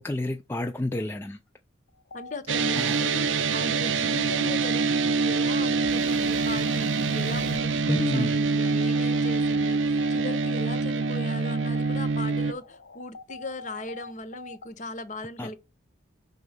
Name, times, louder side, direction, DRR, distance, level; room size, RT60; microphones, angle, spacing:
voice 1, 0.0-1.4 2.8-3.1 7.9-8.4 15.4-15.6, left 1 dB, 15° left, 0.3 m, -29 dB
sound 1, 1.9-14.7, left 4 dB, 85° left, 0.6 m, -44 dB
voice 2, 2.1-15.6, left 1 dB, 40° left, 0.7 m, -38 dB
sound 2, 2.5-12.5, right 4 dB, 90° right, 0.5 m, -25 dB
sound 3, 5.8-10.0, right 1 dB, 40° right, 0.7 m, -44 dB
5.5 x 4.0 x 4.9 m
head